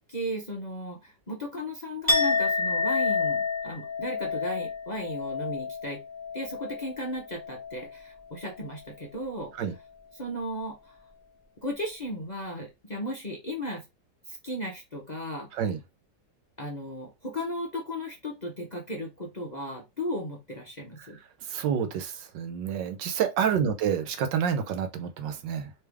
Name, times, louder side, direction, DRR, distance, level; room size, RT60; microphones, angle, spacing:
voice 1, 0.1-6.0 6.3-9.5 10.2-10.9 11.6-13.8 14.3-15.5 16.6-21.2, equal, 35° left, 0.8 m, -35 dB
Chink clink, 2.1-8.0 8.3-8.7, left 4 dB, 10° left, 1.3 m, -29 dB
voice 2, 21.4-25.7, right 8 dB, 80° right, 1.4 m, -28 dB
3.4 x 3.2 x 3.4 m
omnidirectional pair, 1.9 m